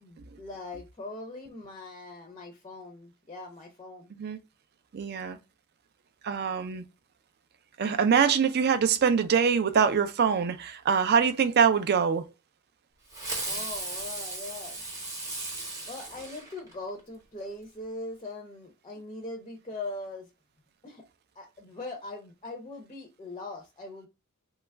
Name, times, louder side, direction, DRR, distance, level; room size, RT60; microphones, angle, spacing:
voice 1, 0.0-4.1 13.5-14.8 15.9-20.3 20.8-21.0 21.4-24.1, left 2 dB, 25° left, 0.5 m, -41 dB
voice 2, 4.9-5.4 6.2-6.8 7.8-12.2, right 6 dB, 45° right, 0.4 m, -24 dB
Fireworks, 13.1-17.0, right 2 dB, 15° right, 0.8 m, -36 dB
3.0 x 2.3 x 3.3 m
head